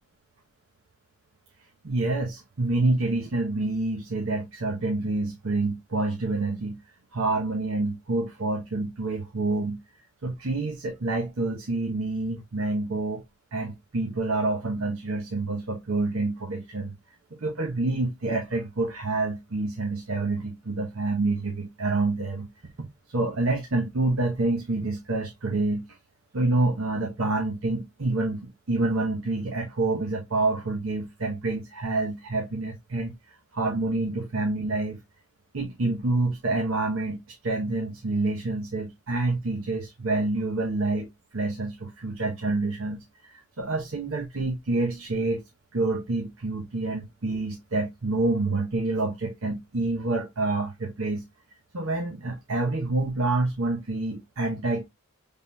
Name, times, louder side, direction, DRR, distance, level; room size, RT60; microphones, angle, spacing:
voice 1, 1.8-6.8 7.1-9.8 10.2-13.2 13.5-16.9 17.4-22.5 22.8-25.8 26.3-33.1 33.5-35.0 35.5-41.1 41.3-45.4 45.7-51.2 51.7-54.8, right 2 dB, 65° right, 0.9 m, -27 dB
5.7 x 3.6 x 2.2 m
head